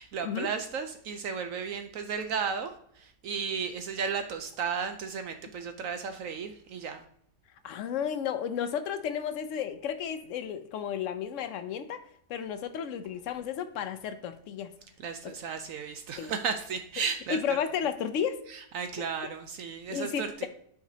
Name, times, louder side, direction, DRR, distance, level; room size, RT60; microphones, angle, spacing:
voice 1, 0.0-7.0 15.0-17.4 18.5-20.5, right 6 dB, 70° right, 7 dB, 0.8 m, -34 dB
voice 2, 7.6-12.0 12.3-14.7 15.2-15.4 16.2-16.3 17.3-18.4 19.9-20.5, left 8 dB, 70° left, 9 dB, 0.7 m, -33 dB
9.0 x 5.0 x 2.8 m, 0.67 s
omnidirectional pair, 1.9 m